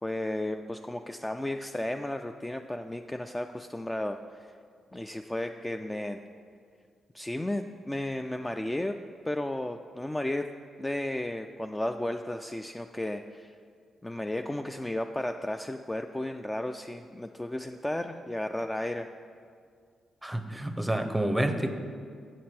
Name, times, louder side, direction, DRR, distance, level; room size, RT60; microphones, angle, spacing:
voice 1, 0.0-4.5 4.9-6.2 7.1-9.0 9.3-10.5 10.8-13.6 14.0-19.1, left 1 dB, 15° left, 6 dB, 0.3 m, -33 dB
voice 2, 20.2-21.7, right 1 dB, 10° right, 7 dB, 0.7 m, -28 dB
7.4 x 6.0 x 4.3 m, 2.1 s
supercardioid pair, 50°, 0 cm